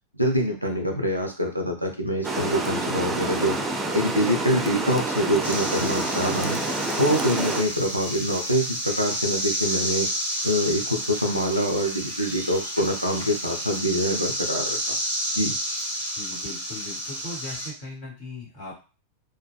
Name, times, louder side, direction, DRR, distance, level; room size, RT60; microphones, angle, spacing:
voice 1, 0.2-3.6 3.9-6.6 7.0-10.1 10.4-14.9 15.3-15.5, equal, 90° right, 2 dB, 0.4 m, -25 dB
Water, 2.2-7.6, right 2 dB, 15° right, 0.4 m, -28 dB
sound 1, 5.4-17.7, equal, 85° left, 0.9 m, -30 dB
voice 2, 16.2-18.8, left 2 dB, 55° left, -4 dB, 1.3 m, -38 dB
2.5 x 2.2 x 2.2 m, 0.33 s
figure-of-eight pair, 90°, 0 cm